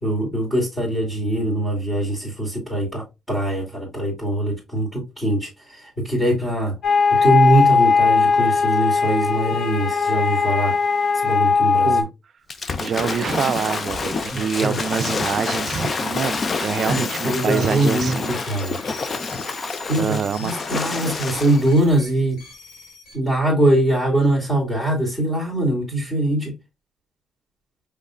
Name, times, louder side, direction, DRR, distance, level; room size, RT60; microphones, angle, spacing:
voice 1, 0.0-6.7 7.1-10.7 11.2-12.0 14.3-14.8 16.9-18.8 19.9-22.4 23.1-26.5, right 1 dB, 15° left, 2.4 m, -22 dB
sound 1, 6.8-12.0, left 5 dB, 55° left, 1.0 m, -18 dB
Waves surf / Splash splatter, 12.5-21.8, left 4 dB, 40° left, 0.5 m, -27 dB
voice 2, 12.8-18.4 20.0-20.5, right 7 dB, 55° right, 0.4 m, -25 dB
sound 2, 13.1-23.1, left 3 dB, 90° left, 1.9 m, -42 dB
5.3 x 3.6 x 2.4 m
cardioid pair, 90°, 0 cm